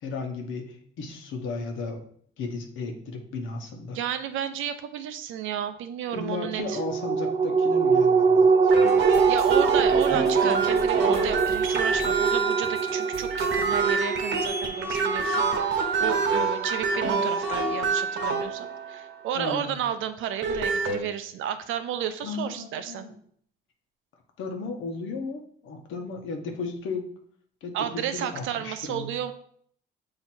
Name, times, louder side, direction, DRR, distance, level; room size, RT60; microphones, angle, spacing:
voice 1, 0.0-2.0 2.4-4.0 6.1-8.6 19.3-19.8 22.2-23.1 24.4-27.1 27.6-29.1, left 3 dB, 85° left, 4 dB, 1.1 m, -34 dB
voice 2, 3.9-6.8 9.3-23.1 27.7-29.3, right 10 dB, 85° right, 10 dB, 0.6 m, -32 dB
sound 1, 6.6-17.4 17.8-17.9, right 5 dB, 30° right, 0.5 m, -24 dB
sound 2, 8.7-19.2 20.2-21.0, right 4 dB, 70° right, 1.1 m, -26 dB
sound 3, 8.9-13.8, equal, 50° left, 1.2 m, -45 dB
7.7 x 2.9 x 4.4 m, 0.62 s
cardioid pair, 90°, 20 cm